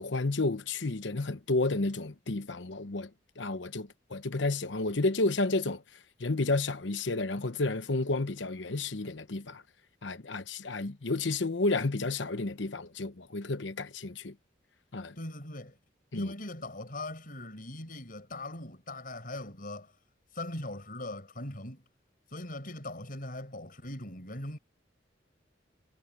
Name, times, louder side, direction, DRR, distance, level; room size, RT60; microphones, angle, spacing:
voice 1, 0.0-3.1 3.4-5.8 6.2-9.6 10.0-14.3 14.9-15.2 16.1-16.3, left 2 dB, 80° left, 1.0 m, -31 dB
voice 2, 15.2-15.8 16.1-19.9 20.3-21.8 22.3-24.6, left 1 dB, 50° left, 5.6 m, -40 dB
head